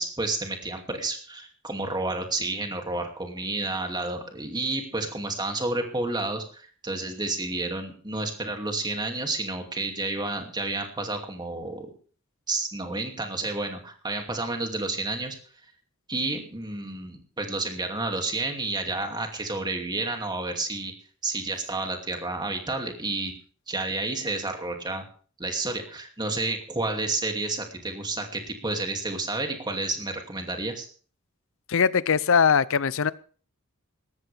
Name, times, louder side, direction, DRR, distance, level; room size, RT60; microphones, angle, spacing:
voice 1, 0.0-11.9 12.5-15.4 16.1-20.9 21.2-23.3 23.7-25.0 25.4-30.9, right 2 dB, 20° right, 3 dB, 2.6 m, -30 dB
voice 2, 31.7-33.1, left 6 dB, 65° left, 19 dB, 0.6 m, -21 dB
18.5 x 14.0 x 3.5 m, 0.42 s
head